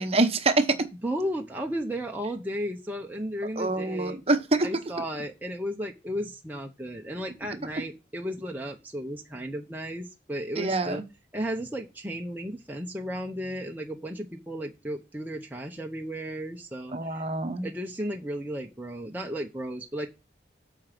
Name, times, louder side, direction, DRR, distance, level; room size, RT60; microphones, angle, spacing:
voice 1, 0.0-0.9 3.6-4.7 10.6-11.0 16.9-17.7, right 2 dB, 35° right, 1.0 m, -25 dB
voice 2, 1.0-4.2 4.6-11.0 11.3-17.2 17.6-20.1, equal, 10° right, 0.8 m, -34 dB
8.4 x 5.1 x 6.0 m
head